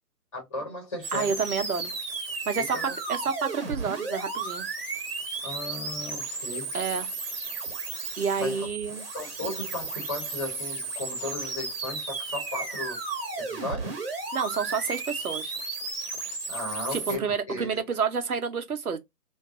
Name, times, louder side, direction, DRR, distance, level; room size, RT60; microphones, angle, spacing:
voice 1, 0.3-1.4 2.5-3.0 5.4-6.8 8.0-8.7 9.1-13.0 13.4-14.0 16.5-17.8, left 2 dB, 20° left, 1.0 m, -36 dB
sound 1, 1.0-17.2, right 3 dB, 35° right, 1.0 m, -34 dB
voice 2, 1.1-1.9 2.5-4.7 6.7-7.1 8.2-9.1 14.3-15.5 16.9-19.0, right 6 dB, 65° right, 0.8 m, -29 dB
2.6 x 2.3 x 3.5 m
figure-of-eight pair, 150°, 48 cm